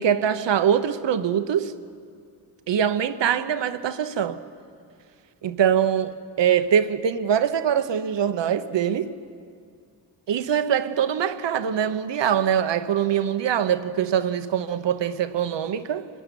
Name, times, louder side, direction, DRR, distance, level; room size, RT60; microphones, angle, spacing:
voice 1, 0.0-1.7 2.7-4.4 5.4-9.1 10.3-16.1, right 8 dB, 90° right, 1.0 m, -23 dB
26.0 x 15.0 x 9.9 m
cardioid pair, 55°, 42 cm